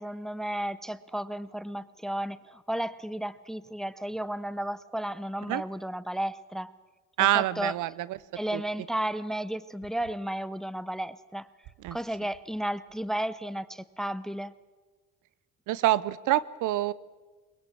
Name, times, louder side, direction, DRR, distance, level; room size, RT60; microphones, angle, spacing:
voice 1, 0.0-6.7 7.2-7.7 8.4-11.5 11.9-14.5, right 1 dB, ahead, 17 dB, 0.6 m, -33 dB
voice 2, 7.2-8.2 8.5-8.6 11.8-12.0 15.7-16.9, right 15 dB, 75° right, 19 dB, 0.7 m, -26 dB
21.5 x 21.0 x 7.2 m, 1.3 s
cardioid pair, 90°, 31 cm